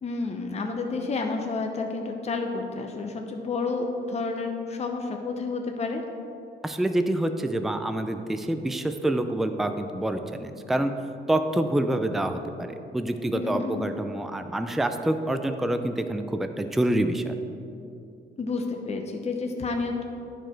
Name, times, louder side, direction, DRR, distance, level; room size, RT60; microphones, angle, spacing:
voice 1, 0.0-6.0 13.3-13.9 18.4-20.0, left 3 dB, 35° left, 3 dB, 0.8 m, -30 dB
voice 2, 6.6-10.9 11.3-17.4, right 1 dB, ahead, 7 dB, 0.4 m, -27 dB
9.9 x 5.0 x 4.5 m, 2.8 s
cardioid pair, 90°, 20 cm